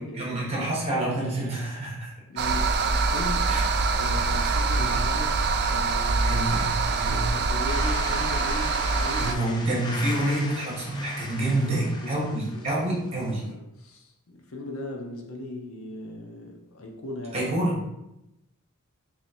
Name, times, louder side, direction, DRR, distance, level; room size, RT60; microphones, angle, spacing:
voice 1, 0.0-2.1 3.5-3.6 4.4-4.5 4.8-5.0 6.2-6.7 7.0-7.2 9.2-13.4 17.3-17.9, right 1 dB, 30° right, -5 dB, 1.3 m, -28 dB
voice 2, 2.3-3.5 4.0-5.4 5.7-6.5 6.8-9.5 11.7-12.8 13.2-17.5, left 2 dB, 70° left, 2 dB, 0.7 m, -38 dB
sound 1, 2.4-9.3, right 4 dB, 50° right, 0.3 m, -24 dB
sound 2, 7.6-13.4, left 2 dB, 20° left, 0.4 m, -38 dB
3.1 x 2.8 x 4.3 m, 0.90 s
head